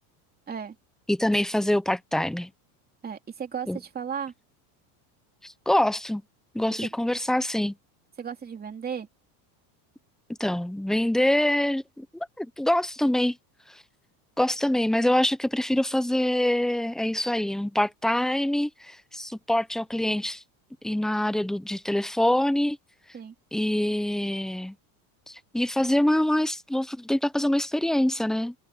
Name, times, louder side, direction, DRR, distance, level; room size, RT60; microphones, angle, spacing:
voice 1, 1.1-2.5 3.7-3.8 5.4-6.2 6.5-7.8 10.4-13.4 14.4-20.4 20.8-22.8 23.5-24.8 25.3-28.5, left 1 dB, ahead, 0.6 m, -25 dB
voice 2, 3.0-4.3 6.8-6.9 8.2-9.1 23.1-23.3, right 7 dB, 20° right, 3.0 m, -34 dB
supercardioid pair, 140°, 45 cm